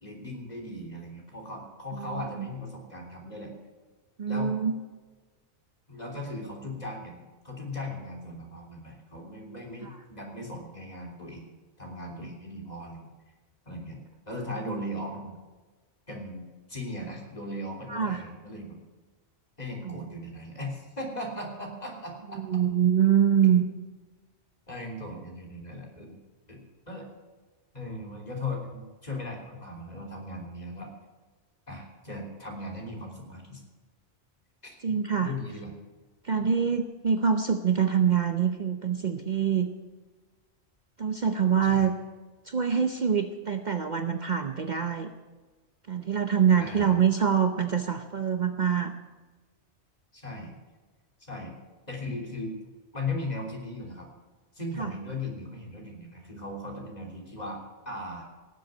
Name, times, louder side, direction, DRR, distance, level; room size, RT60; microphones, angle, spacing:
voice 1, 0.0-3.5 4.3-4.6 5.9-11.5 11.8-13.1 13.7-14.0 14.3-15.4 16.1-18.8 19.6-22.4 24.7-26.2 26.5-27.0 27.7-30.9 31.7-33.6 34.6-34.7 35.2-35.7 36.4-36.7 41.7-41.9 46.6-47.0 50.1-50.5 51.2-51.5 51.9-52.5 52.9-54.1 54.5-57.6 57.9-58.3, left 1 dB, 35° left, 0 dB, 3.5 m, -38 dB
voice 2, 2.0-2.5 4.2-4.7 9.8-9.9 17.9-18.2 19.8-20.0 22.4-23.6 34.8-35.3 36.2-39.7 41.0-41.9 42.5-45.1 45.9-48.9 54.8-54.9, right 7 dB, 45° right, 7 dB, 0.8 m, -25 dB
18.0 x 7.8 x 8.2 m, 1.3 s
omnidirectional pair, 1.2 m